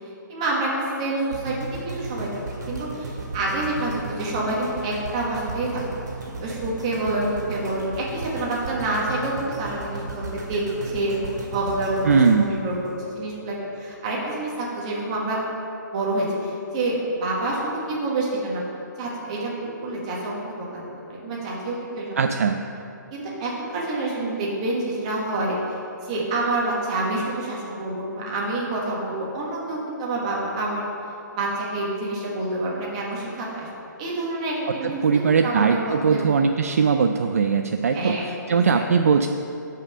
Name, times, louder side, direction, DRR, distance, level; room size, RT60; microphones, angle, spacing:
voice 1, 0.3-2.3 2.7-5.8 6.4-11.2 11.5-12.7 13.0-15.4 15.9-18.6 19.0-22.2 23.1-25.6 26.0-30.9 31.3-33.7 34.0-36.3 37.9-38.2 38.7-38.8, right 2 dB, 20° right, -4 dB, 1.5 m, -27 dB
sound 1, 1.3-13.5 14.0-14.1, right 3 dB, 65° right, 2.1 m, -35 dB
voice 2, 12.0-12.5 22.2-22.6 34.8-39.3, right 5 dB, 50° right, 6 dB, 0.4 m, -20 dB
9.8 x 5.6 x 6.6 m, 2.8 s
hypercardioid pair, 180°, 10 cm